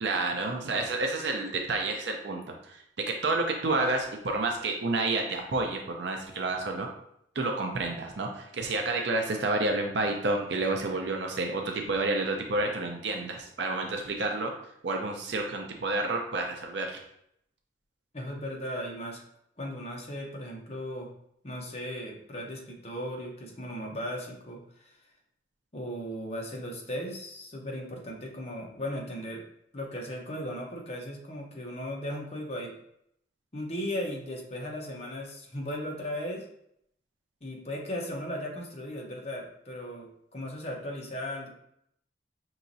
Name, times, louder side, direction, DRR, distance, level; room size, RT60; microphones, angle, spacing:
voice 1, 0.0-2.8 3.2-6.9 7.4-14.5 14.8-17.0, right 2 dB, 70° right, 2 dB, 0.6 m, -29 dB
voice 2, 18.1-19.2 19.6-21.1 21.4-25.0 25.7-29.4 29.7-32.7 33.5-36.4 37.4-41.5, equal, 35° left, 0 dB, 0.8 m, -37 dB
5.6 x 3.0 x 2.6 m, 0.73 s
head